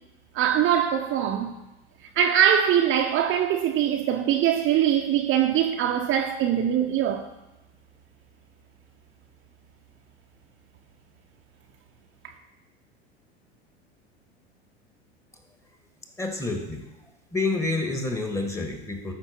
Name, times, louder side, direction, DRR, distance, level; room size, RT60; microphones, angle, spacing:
voice 1, 0.3-1.5 2.2-7.3, right 9 dB, 35° right, 0.9 m, -22 dB
voice 2, 16.2-16.9 17.3-19.1, left 3 dB, 10° left, 1.8 m, -28 dB
14.0 x 5.9 x 4.6 m
figure-of-eight pair, 80°, 33 cm